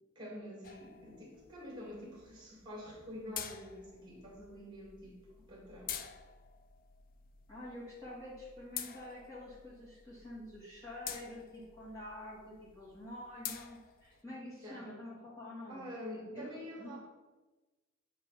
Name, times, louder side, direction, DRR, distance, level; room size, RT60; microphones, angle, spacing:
voice 1, 0.1-5.1 5.5-5.9 14.6-14.8 15.7-17.0, equal, 20° right, -3 dB, 2.5 m, -47 dB
sound 1, 0.6-14.2, left 9 dB, 45° left, 0.4 m, -49 dB
voice 2, 7.5-15.9 16.3-17.0, left 1 dB, 15° left, -9 dB, 1.9 m, -47 dB
8.1 x 3.2 x 5.7 m, 1.2 s
head